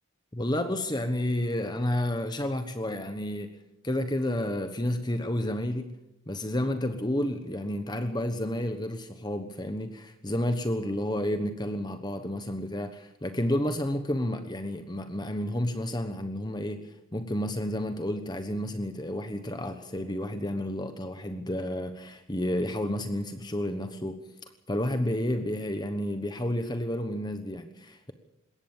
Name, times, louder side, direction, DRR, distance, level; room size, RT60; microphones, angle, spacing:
voice 1, 0.3-3.6 3.8-6.0 6.3-24.2 24.7-28.1, left 1 dB, 20° left, 8 dB, 1.2 m, -31 dB
21.5 x 17.5 x 7.3 m, 0.80 s
head